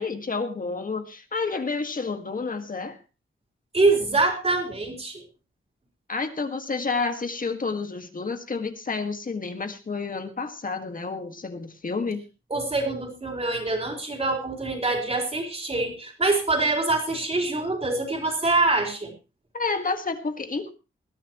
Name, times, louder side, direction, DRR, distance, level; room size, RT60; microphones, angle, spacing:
voice 1, 0.0-3.0 6.1-12.2 19.5-20.7, left 4 dB, 40° left, 7 dB, 1.9 m, -30 dB
voice 2, 3.7-5.2 12.5-19.1, right 3 dB, 30° right, 2 dB, 4.1 m, -25 dB
20.0 x 13.0 x 3.1 m, 0.30 s
wide cardioid pair, 150°, 21 cm